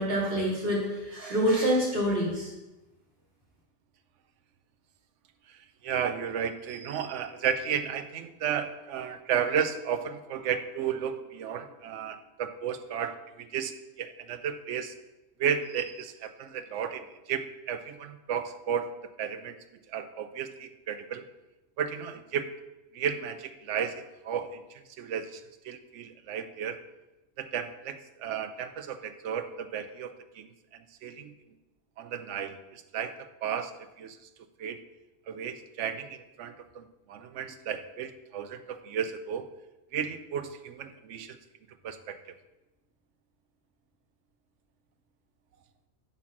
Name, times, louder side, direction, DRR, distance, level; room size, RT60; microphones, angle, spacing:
voice 1, 0.0-2.5, equal, 55° right, -6 dB, 2.9 m, -26 dB
voice 2, 5.8-15.0 15.4-18.9 19.2-19.6 19.9-21.2 21.8-22.5 22.9-26.8 27.4-31.3 32.0-33.1 33.4-34.2 34.6-34.8 35.3-39.5 39.9-41.4 41.8-42.2, right 8 dB, 90° right, 10 dB, 1.0 m, -33 dB
7.9 x 4.4 x 6.1 m, 1.0 s
omnidirectional pair, 1.2 m